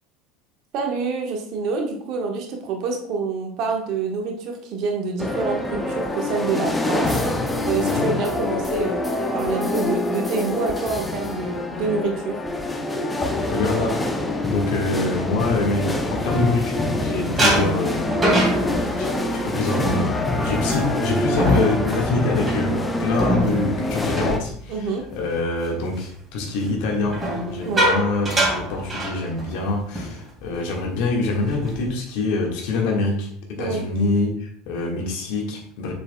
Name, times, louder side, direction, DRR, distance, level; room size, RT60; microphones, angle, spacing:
voice 1, 0.7-7.2 7.6-12.3 24.7-25.0 27.6-27.9 33.6-33.8, right 4 dB, 50° right, 2 dB, 1.4 m, -27 dB
sound 1, 5.2-24.4, left 2 dB, 15° left, 0.8 m, -25 dB
voice 2, 13.5-14.0 14.4-18.1 19.0-27.2 27.5-35.9, left 3 dB, 55° left, 1 dB, 1.6 m, -25 dB
sound 2, 15.9-16.9 17.4-25.2 25.6-25.9 27.0-29.6 29.9-30.1 30.5-30.7 31.2-31.9, right 1 dB, 20° right, 2.9 m, -25 dB
6.8 x 6.7 x 2.3 m, 0.62 s
figure-of-eight pair, 70°, 0 cm